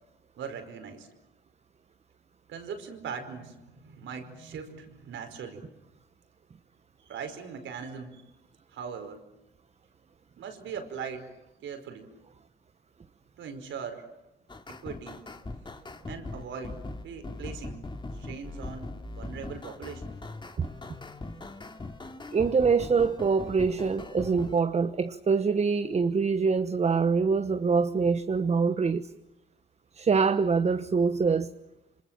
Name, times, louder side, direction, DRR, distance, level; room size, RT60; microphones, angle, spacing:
voice 1, 0.4-1.1 2.5-5.8 7.0-8.2 8.7-9.2 10.4-11.3 11.6-12.1 13.4-14.1 14.7-15.3 16.1-17.8 18.1-20.1, right 6 dB, 75° right, 5.1 m, -40 dB
sound 1, 14.5-24.6, left 2 dB, 25° left, 2.7 m, -40 dB
voice 2, 22.3-29.1 29.9-31.5, right 5 dB, 35° right, 1.2 m, -25 dB
27.5 x 26.0 x 7.6 m
cardioid pair, 90°, 20 cm